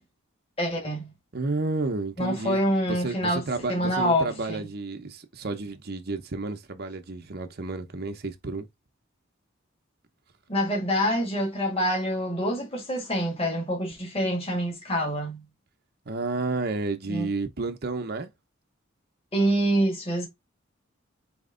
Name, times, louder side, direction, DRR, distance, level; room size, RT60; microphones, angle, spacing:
voice 1, 0.6-1.1 2.2-4.6 10.5-15.4 17.1-17.3 19.3-20.3, equal, 30° left, 1.7 m, -26 dB
voice 2, 1.3-8.7 16.1-18.3, right 3 dB, 50° right, 0.8 m, -31 dB
4.3 x 3.2 x 3.7 m
head